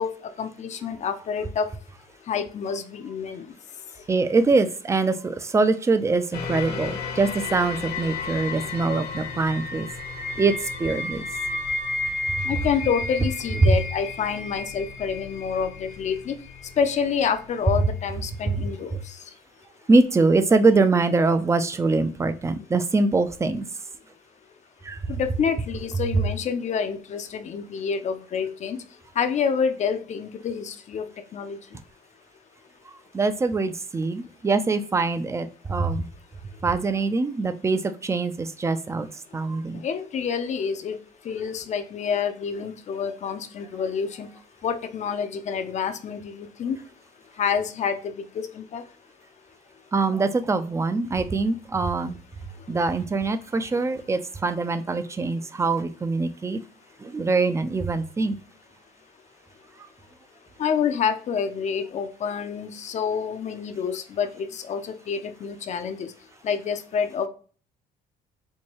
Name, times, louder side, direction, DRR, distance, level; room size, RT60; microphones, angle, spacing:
voice 1, 0.0-1.7 2.3-3.5 12.4-16.4 16.8-19.2 25.1-28.8 29.2-31.6 39.7-41.0 41.2-44.3 44.6-46.8 47.4-48.8 60.6-66.1 66.4-67.3, left 6 dB, 45° left, 9 dB, 0.5 m, -28 dB
voice 2, 4.1-9.9 10.3-11.3 12.3-12.5 13.6-13.8 18.5-18.6 18.9-19.0 19.9-23.6 24.8-25.1 26.1-26.3 33.1-36.1 36.6-39.1 39.3-39.8 49.9-52.1 52.7-56.6 57.0-58.4, right 3 dB, 15° right, 11 dB, 0.4 m, -23 dB
sound 1, 6.3-17.4 18.0-18.1, left 3 dB, 75° left, 1.2 m, -33 dB
4.4 x 2.2 x 2.9 m, 0.41 s
cardioid pair, 110°, 17 cm